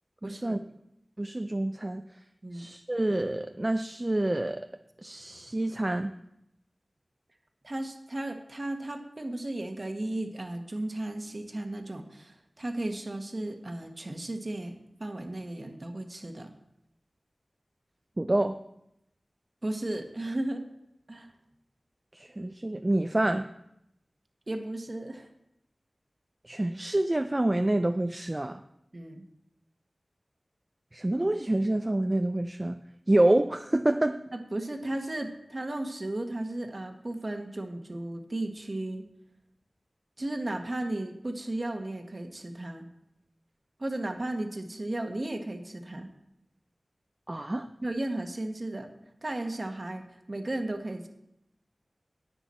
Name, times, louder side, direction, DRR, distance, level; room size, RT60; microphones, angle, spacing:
voice 1, 0.2-0.6 2.4-2.7 7.6-16.5 19.6-20.6 21.1-21.3 24.5-25.3 28.9-29.2 34.3-39.0 40.2-42.9 43.8-46.1 47.8-48.9 49.2-51.1, right 1 dB, 45° right, 5 dB, 1.2 m, -35 dB
voice 2, 1.2-2.0 2.5-4.6 5.0-6.1 18.2-18.6 22.1-23.5 26.4-28.6 30.9-32.8 33.1-34.2 47.3-47.7, right 1 dB, 30° right, 8 dB, 0.4 m, -27 dB
10.0 x 9.1 x 4.3 m, 0.82 s
wide cardioid pair, 65°, 0 cm